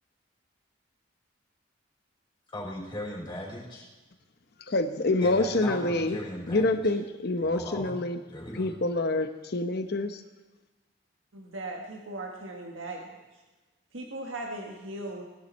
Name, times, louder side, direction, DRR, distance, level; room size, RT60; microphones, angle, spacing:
voice 1, 2.5-3.9 5.2-6.8 7.4-8.8, left 1 dB, 25° left, -3 dB, 4.4 m, -38 dB
voice 2, 4.7-6.2 6.5-8.2 8.6-10.2, left 2 dB, 55° left, 8 dB, 1.0 m, -27 dB
voice 3, 11.3-13.2 13.9-15.2, right 2 dB, 90° right, 1 dB, 1.6 m, -38 dB
19.0 x 11.5 x 4.2 m, 1.2 s
head